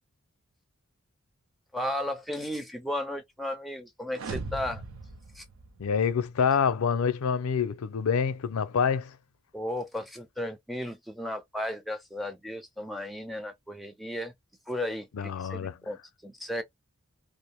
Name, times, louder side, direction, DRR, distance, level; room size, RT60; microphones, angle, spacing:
voice 1, 1.7-4.8 5.3-5.4 9.5-14.3 14.7-16.6, left 1 dB, ahead, 0.5 m, -35 dB
sound 1, 4.1-6.3, right 3 dB, 65° right, 0.6 m, -39 dB
voice 2, 5.8-9.2 15.1-15.7, left 6 dB, 80° left, 0.4 m, -26 dB
2.5 x 2.0 x 2.8 m
head